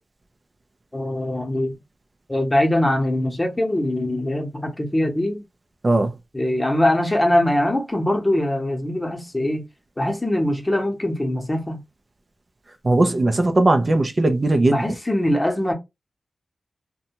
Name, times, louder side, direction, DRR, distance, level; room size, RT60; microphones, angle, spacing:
voice 1, 0.9-1.7 2.3-5.4 6.3-9.6 10.0-11.8 14.6-15.7, left 1 dB, 25° left, 0.9 m, -22 dB
voice 2, 12.8-14.8, right 2 dB, 45° right, 0.5 m, -18 dB
2.6 x 2.2 x 2.8 m
cardioid pair, 45°, 0 cm